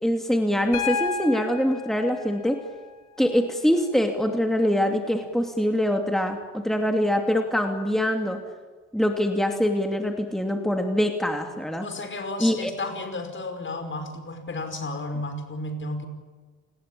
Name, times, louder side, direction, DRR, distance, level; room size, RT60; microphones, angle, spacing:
voice 1, 0.0-2.6 3.2-8.4 8.9-11.9 12.4-12.7, equal, ahead, 4 dB, 2.8 m, -24 dB
Piano, 0.7-4.7 6.3-6.4, left 5 dB, 90° left, 3.8 m, -34 dB
voice 2, 11.8-16.1, left 2 dB, 40° left, 8 dB, 5.5 m, -33 dB
29.0 x 20.0 x 8.8 m, 1.4 s
cardioid pair, 90°, 30 cm